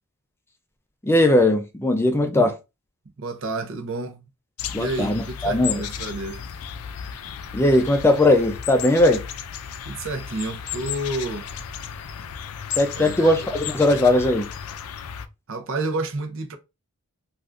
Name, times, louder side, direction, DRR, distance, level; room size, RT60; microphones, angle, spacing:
voice 1, 1.0-2.6 4.7-5.8 7.5-9.2 12.7-14.5, left 1 dB, 10° left, 0.4 m, -19 dB
voice 2, 3.2-4.2 4.8-6.4 9.8-11.5 12.9-13.3 15.5-16.6, right 2 dB, 60° right, 0.6 m, -30 dB
sound 1, 4.6-15.3, left 8 dB, 80° left, 0.4 m, -34 dB
3.5 x 2.5 x 2.5 m
head